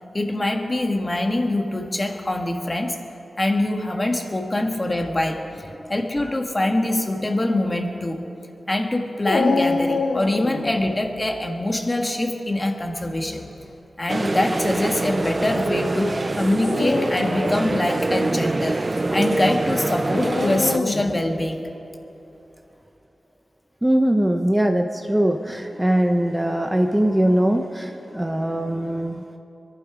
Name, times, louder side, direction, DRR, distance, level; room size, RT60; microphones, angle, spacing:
voice 1, 0.1-3.0 3.4-5.6 5.9-8.2 8.7-13.4 14.0-18.8 19.1-21.7, left 1 dB, 30° left, 3 dB, 1.6 m, -24 dB
Dog, 9.2-10.9 13.0-13.5 14.3-14.4 16.5-17.7 20.2-21.2, left 3 dB, 75° left, 1.4 m, -25 dB
sound 1, 14.1-20.8, right 2 dB, 35° right, 0.5 m, -25 dB
voice 2, 23.8-29.2, right 1 dB, 10° right, 4 dB, 0.8 m, -21 dB
24.0 x 11.5 x 4.9 m, 2.9 s
wide cardioid pair, 70°, 0 cm